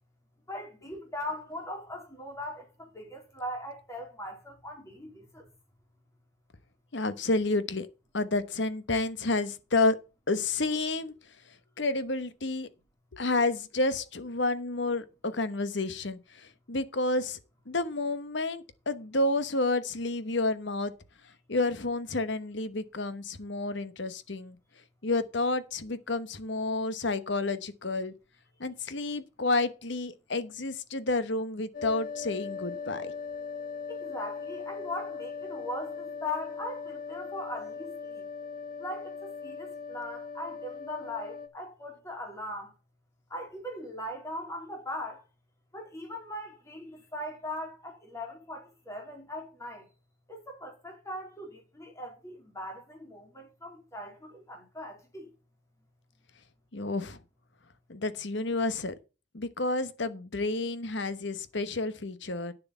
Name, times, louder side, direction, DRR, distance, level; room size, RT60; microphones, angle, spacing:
voice 1, 0.5-5.4 33.9-38.3 38.8-42.7 43.3-45.2 45.7-49.9 50.3-55.3, left 1 dB, 15° left, 3.4 m, -40 dB
voice 2, 6.9-7.9 8.1-10.0 10.3-11.1 11.8-12.7 13.1-16.2 16.7-17.4 17.7-20.9 21.5-24.6 25.0-28.1 28.6-33.1 56.7-57.2 57.9-58.9 59.3-62.5, left 2 dB, 65° left, 1.1 m, -30 dB
sound 1, 31.7-41.5, left 5 dB, 45° left, 1.2 m, -39 dB
9.7 x 7.1 x 5.6 m
head